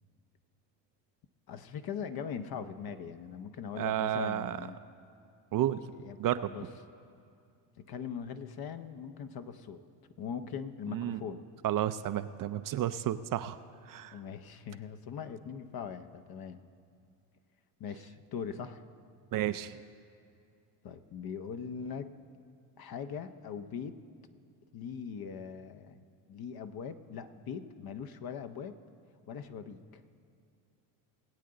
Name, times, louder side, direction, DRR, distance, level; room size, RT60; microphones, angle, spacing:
voice 1, 1.5-4.8 6.0-6.2 6.5-6.7 7.8-9.8 10.2-11.4 14.1-16.6 17.8-18.8 20.8-22.1 22.8-24.0 24.7-26.0 26.3-28.8 29.3-30.0, left 7 dB, 50° left, 10 dB, 0.8 m, -41 dB
voice 2, 3.8-4.6 5.5-5.8 6.2-6.5 10.9-11.2 11.6-13.6 13.9-14.2 19.3-19.8, right 12 dB, 45° right, 12 dB, 0.5 m, -31 dB
20.0 x 8.5 x 3.8 m, 2.5 s
supercardioid pair, 70°, 49 cm